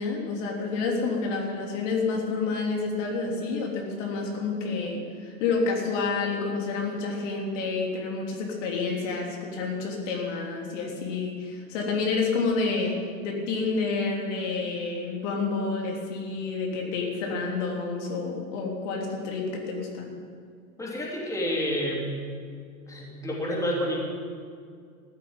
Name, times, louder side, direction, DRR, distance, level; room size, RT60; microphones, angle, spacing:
voice 1, 0.0-13.0 13.2-20.1, left 4 dB, 55° left, 0 dB, 3.4 m, -29 dB
voice 2, 20.8-22.1 22.9-24.0, equal, 5° left, -3 dB, 3.3 m, -29 dB
14.5 x 9.0 x 9.0 m, 2.2 s
hypercardioid pair, 110°, 43 cm